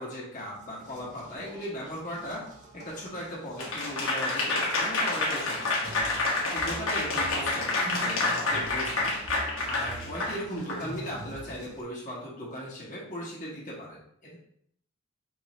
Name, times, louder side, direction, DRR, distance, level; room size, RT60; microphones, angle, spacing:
voice 1, 0.0-2.4 2.7-5.8 6.5-9.1 9.6-14.4, equal, 35° left, -6 dB, 1.2 m, -38 dB
sound 1, 0.6-11.8, right 2 dB, 35° right, 0.7 m, -45 dB
Applause / Crowd, 3.6-10.8, left 2 dB, 65° left, 1.1 m, -28 dB
5.1 x 3.1 x 3.0 m, 0.69 s
head